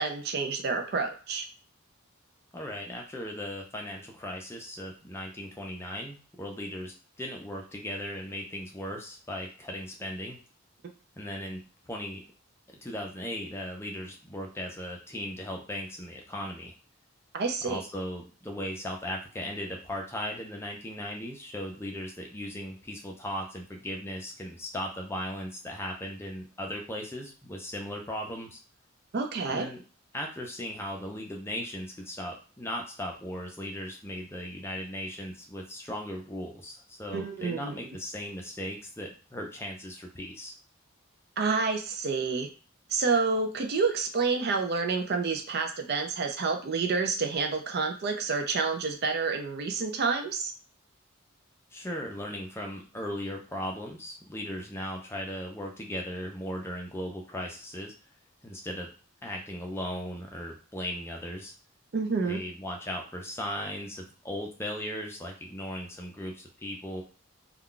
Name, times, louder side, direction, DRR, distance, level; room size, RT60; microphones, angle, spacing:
voice 1, 0.0-1.5 17.3-17.8 29.1-29.7 37.1-38.0 41.4-42.5 42.9-50.5 61.9-62.4, right 4 dB, 50° right, 5 dB, 0.4 m, -29 dB
voice 2, 2.5-10.4 11.2-12.2 12.7-16.7 17.6-28.6 29.5-29.8 30.1-40.5 51.7-57.9 58.4-58.9 59.2-61.5 62.2-67.0, equal, 10° left, 1 dB, 0.5 m, -37 dB
2.3 x 2.2 x 3.7 m, 0.37 s
head